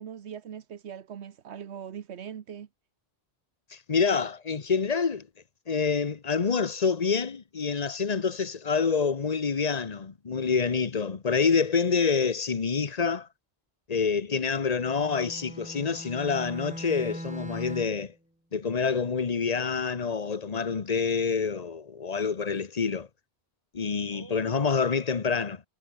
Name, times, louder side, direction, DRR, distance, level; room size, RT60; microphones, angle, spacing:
voice 1, 0.0-2.7 24.1-24.7, right 8 dB, 85° right, 1.2 m, -41 dB
voice 2, 3.7-5.3 5.7-13.3 13.9-18.1 18.5-23.1 23.7-25.6, left 5 dB, 40° left, 1.1 m, -27 dB
Bowed string instrument, 14.7-18.1, right 1 dB, 5° right, 1.7 m, -40 dB
omnidirectional pair, 1.1 m